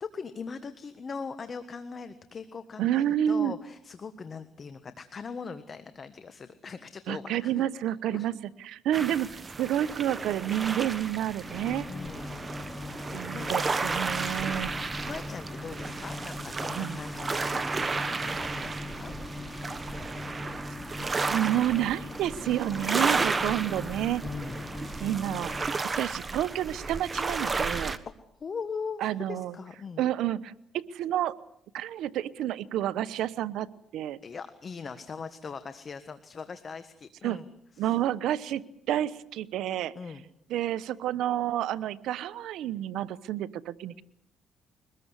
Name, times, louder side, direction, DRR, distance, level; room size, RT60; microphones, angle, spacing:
voice 1, 0.0-7.5 7.9-8.3 11.9-12.4 13.3-13.5 15.0-19.1 24.2-24.7 28.0-28.1 28.4-30.0 34.2-37.5 37.7-37.9 39.9-40.2, left 5 dB, 40° left, 11 dB, 1.5 m, -40 dB
voice 2, 2.8-3.5 7.1-11.9 13.1-14.7 16.8-17.0 21.0-24.2 25.0-27.9 29.0-29.5 30.0-31.3 31.7-33.7 33.9-34.2 37.2-37.4 37.8-39.9 40.5-44.0, right 12 dB, 85° right, 15 dB, 0.9 m, -30 dB
sound 1, 8.9-28.0, right 4 dB, 30° right, 1.4 m, -33 dB
sound 2, 11.4-25.7, left 2 dB, 15° left, 3.5 m, -40 dB
23.5 x 20.0 x 8.2 m, 0.71 s
cardioid pair, 100°, 0 cm